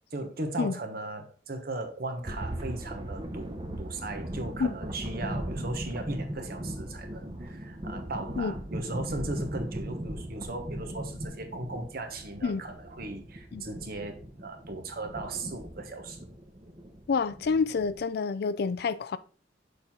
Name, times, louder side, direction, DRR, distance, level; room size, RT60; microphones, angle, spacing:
voice 1, 0.1-16.2, right 2 dB, 60° right, 1.1 m, -37 dB
sound 1, 2.2-18.0, right 1 dB, 30° right, 0.8 m, -38 dB
voice 2, 17.1-19.2, left 5 dB, 65° left, 0.4 m, -28 dB
6.6 x 4.4 x 3.7 m
head